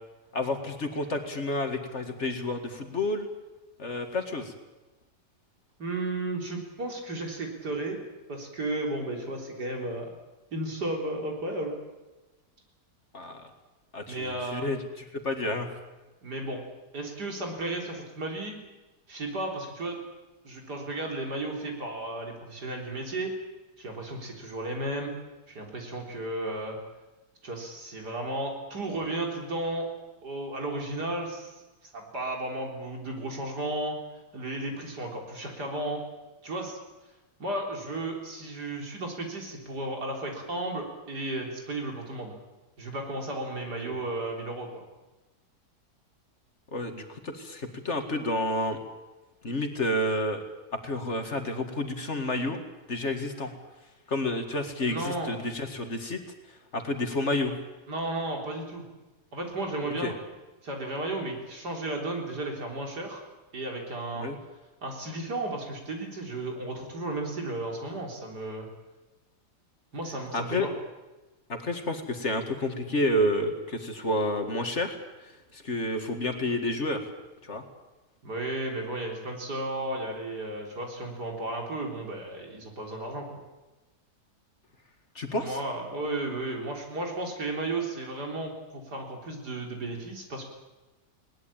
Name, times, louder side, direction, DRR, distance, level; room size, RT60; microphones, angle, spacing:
voice 1, 0.3-3.3 3.8-4.5 13.1-13.5 13.9-14.8 15.2-15.7 43.8-44.0 46.7-48.8 49.4-50.4 50.7-52.6 52.9-53.5 54.1-56.2 56.7-57.5 60.0-60.1 64.2-64.4 70.3-70.7 71.5-75.0 75.5-77.0 77.4-77.6 85.2-85.6, left 1 dB, 45° left, 6 dB, 2.2 m, -30 dB
voice 2, 5.8-8.0 8.3-10.1 10.5-11.7 14.1-14.7 16.2-16.6 16.9-18.6 19.1-20.0 20.4-23.3 23.8-25.1 25.5-26.8 27.4-29.9 30.2-31.6 31.9-34.0 34.3-36.0 36.4-36.8 37.4-42.4 42.8-44.8 54.8-55.4 57.9-58.8 59.3-60.1 60.6-63.2 63.5-64.3 64.8-68.7 69.9-70.7 78.2-83.3 85.3-90.4, right 2 dB, 75° right, 1 dB, 4.4 m, -34 dB
21.0 x 19.0 x 8.8 m, 1.1 s
omnidirectional pair, 1.8 m